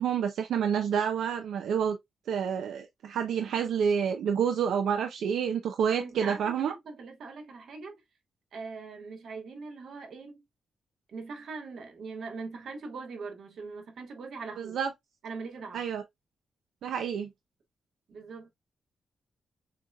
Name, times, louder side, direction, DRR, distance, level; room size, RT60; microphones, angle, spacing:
voice 1, 0.0-2.0 2.3-6.7 14.6-14.9 15.7-16.0 16.8-17.3, right 7 dB, 85° right, 0.5 m, -28 dB
voice 2, 5.9-7.9 8.5-10.4 11.1-14.8 15.2-15.8 18.1-18.5, right 4 dB, 65° right, 1.4 m, -41 dB
6.6 x 2.8 x 2.3 m
wide cardioid pair, 145°, 0 cm